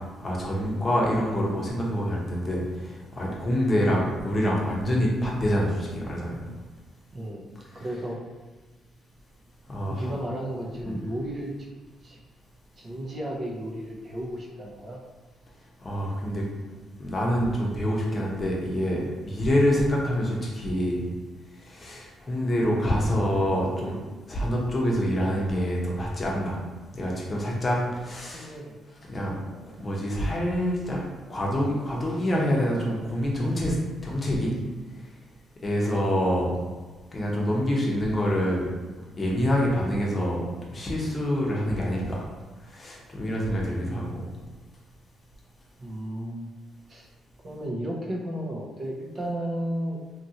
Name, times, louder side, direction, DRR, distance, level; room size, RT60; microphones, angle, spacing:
voice 1, 0.2-6.4 7.7-7.8 9.7-10.1 10.8-11.0 15.8-16.4 17.0-21.0 21.6-24.0 24.3-26.6 26.9-28.5 29.1-29.3 29.8-31.0 31.3-33.8 34.0-34.6 35.6-36.5 37.1-38.7 39.2-40.5 40.7-42.3 42.7-44.3, equal, 30° left, -3 dB, 0.8 m, -26 dB
voice 2, 7.1-8.2 9.9-11.5 12.0-12.2 12.8-15.0 28.3-28.7 45.8-46.5 46.9-47.1 47.4-50.0, right 1 dB, 40° right, -2 dB, 0.6 m, -33 dB
2.9 x 2.5 x 2.8 m, 1.3 s
cardioid pair, 90°, 0 cm